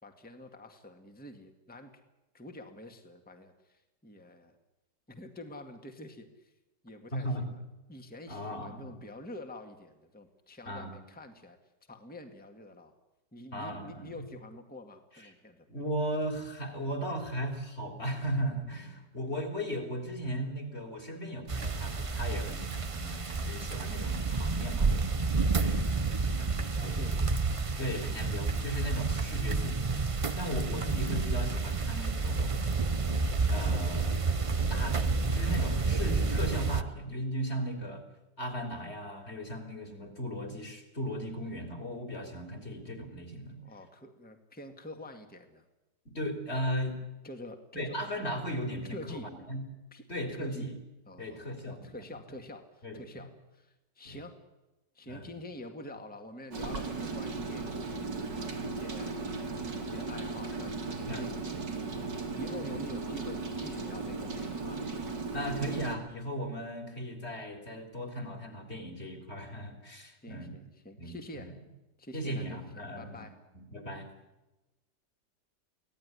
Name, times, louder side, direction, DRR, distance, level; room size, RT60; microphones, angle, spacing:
voice 1, 0.0-2.0 2.3-4.6 5.1-6.5 6.8-7.6 7.9-11.6 11.9-12.9 13.3-15.6 25.8-27.2 30.6-30.7 43.6-45.6 47.2-48.0 48.9-49.3 49.9-50.0 50.4-50.7 51.1-54.3 54.9-59.2 59.6-64.8 70.0-71.6 72.0-73.4, left 1 dB, 5° left, 5 dB, 1.9 m, -47 dB
voice 2, 7.1-7.5 8.3-9.0 10.7-11.0 13.5-14.1 15.7-24.9 25.6-25.9 26.2-26.3 26.8-27.2 27.8-30.0 30.4-32.6 33.5-34.1 34.7-38.0 38.4-43.6 46.1-47.0 47.7-49.6 50.1-50.7 51.2-52.0 52.8-53.2 54.0-54.2 55.0-55.3 61.1-61.6 62.0-62.1 62.6-62.8 65.3-70.6 71.0-71.5 72.1-73.3 73.5-74.1, equal, 35° left, 4 dB, 3.9 m, -37 dB
sound 1, 21.5-36.8, right 4 dB, 40° right, 0.4 m, -30 dB
Rain, 56.5-66.0, right 3 dB, 75° right, 3.4 m, -36 dB
24.5 x 17.5 x 9.9 m, 1.0 s
omnidirectional pair, 1.9 m